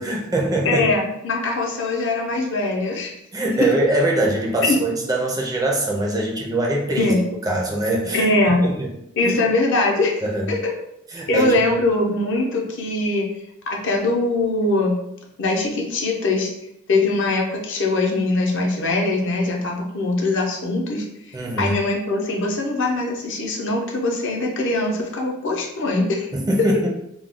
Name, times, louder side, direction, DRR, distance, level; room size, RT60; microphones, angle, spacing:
voice 1, 0.0-0.9 3.3-7.1 7.4-8.9 9.2-9.4 10.2-10.5 11.1-11.8 21.3-21.7 26.3-26.9, right 1 dB, 15° right, 0 dB, 0.4 m, -23 dB
voice 2, 0.6-3.1 4.7-4.8 7.0-7.2 8.1-8.6 9.2-10.6 11.3-13.3 13.7-15.0 15.4-16.5 16.9-26.3, left 2 dB, 60° left, 0 dB, 0.6 m, -22 dB
2.3 x 2.1 x 3.5 m, 0.78 s
head